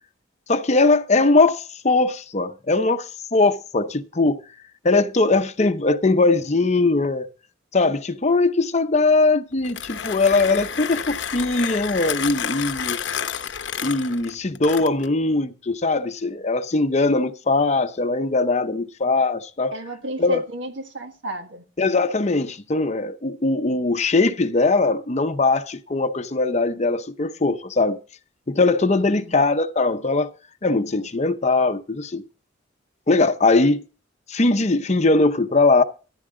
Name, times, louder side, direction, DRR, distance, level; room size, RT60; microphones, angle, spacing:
voice 1, 0.5-4.4 4.8-7.3 7.7-13.0 13.8-19.7 20.2-20.4 21.8-28.0 28.5-30.3 30.6-32.2 33.1-33.8 34.3-35.8, left 3 dB, 35° left, 0.7 m, -20 dB
Mechanisms, 9.5-15.2, left 8 dB, 65° left, 0.8 m, -30 dB
voice 2, 19.7-21.6 29.0-29.4, right 1 dB, 70° right, 1.8 m, -33 dB
14.0 x 11.0 x 3.8 m
head